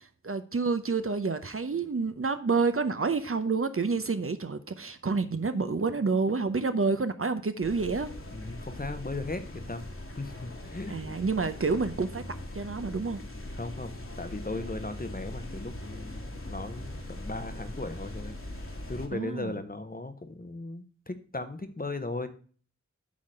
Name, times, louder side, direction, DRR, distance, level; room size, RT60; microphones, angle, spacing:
voice 1, 0.0-8.1 10.9-12.2 12.5-13.2 19.1-19.6, right 4 dB, 45° right, 0.7 m, -29 dB
sound 1, 7.6-19.1, left 1 dB, 45° left, 1.5 m, -41 dB
voice 2, 8.3-9.9 10.2-11.2 13.5-18.4 18.9-22.3, left 2 dB, 30° left, 0.9 m, -37 dB
8.5 x 3.8 x 6.2 m
wide cardioid pair, 65°, 29 cm